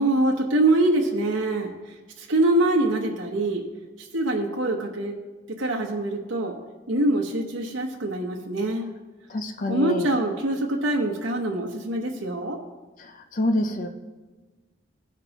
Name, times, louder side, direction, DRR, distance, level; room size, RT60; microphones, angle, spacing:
voice 1, 0.0-1.7 2.2-3.7 4.0-5.2 5.5-6.6 6.9-8.9 9.7-12.6, right 2 dB, 85° right, -1 dB, 1.0 m, -24 dB
voice 2, 9.3-10.1 13.0-13.9, left 1 dB, 45° left, 6 dB, 0.6 m, -27 dB
16.0 x 6.0 x 2.9 m, 1.2 s
head